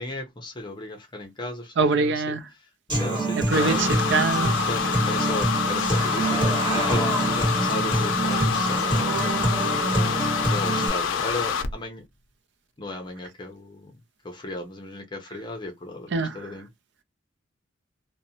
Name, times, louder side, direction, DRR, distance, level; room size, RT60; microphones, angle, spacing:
voice 1, 0.0-2.4 2.9-4.0 4.6-9.3 10.5-12.0 12.8-13.9 14.2-16.7, left 2 dB, 25° left, 0.6 m, -35 dB
voice 2, 1.8-2.4 3.5-4.5 16.1-16.4, right 4 dB, 65° right, 0.4 m, -23 dB
Human voice / Acoustic guitar, 2.9-10.9, right 1 dB, 25° right, 1.4 m, -25 dB
sound 1, 3.5-11.7, left 6 dB, 90° left, 0.5 m, -27 dB
2.5 x 2.1 x 2.7 m
head